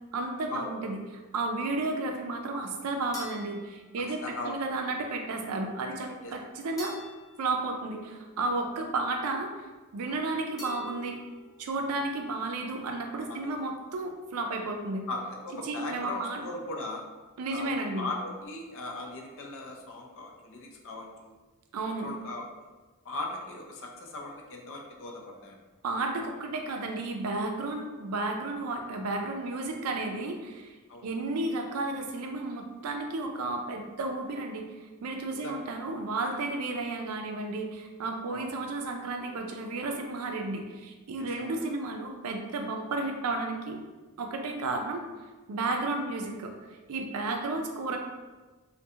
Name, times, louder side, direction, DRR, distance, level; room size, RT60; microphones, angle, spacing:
voice 1, 0.1-6.9 7.4-9.5 9.9-11.2 11.6-15.0 15.6-16.4 17.4-18.1 21.7-22.1 25.8-30.7 31.0-34.7 35.0-43.8 44.2-45.0 45.5-46.5 46.9-48.0, right 2 dB, 90° right, 3 dB, 0.4 m, -32 dB
sound 1, 3.1-4.6 6.8-8.6 10.6-11.7, equal, 15° left, 0.7 m, -47 dB
voice 2, 4.2-4.6 6.2-6.3 10.1-10.2 13.3-13.5 15.1-17.0 17.5-21.3 21.8-22.5 23.1-25.6 30.9-31.1 35.4-35.6 38.3-38.5 41.2-41.6, left 2 dB, 65° left, 1 dB, 0.4 m, -38 dB
2.3 x 2.2 x 2.7 m, 1.2 s
head